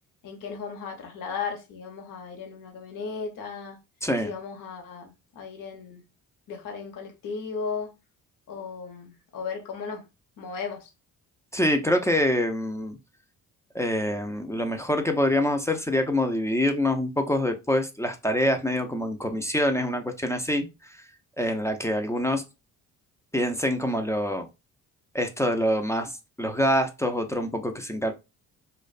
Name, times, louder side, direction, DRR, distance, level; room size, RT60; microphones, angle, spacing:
voice 1, 0.2-3.8 4.2-6.0 6.5-7.9 8.5-10.0 10.4-10.9, left 5 dB, 55° left, 0.8 m, -36 dB
voice 2, 11.5-13.0 13.7-21.0 21.4-22.4 23.3-24.5 25.1-26.1 26.4-28.1, left 1 dB, 10° left, 0.4 m, -25 dB
2.4 x 2.1 x 2.4 m
supercardioid pair, 60°, 39 cm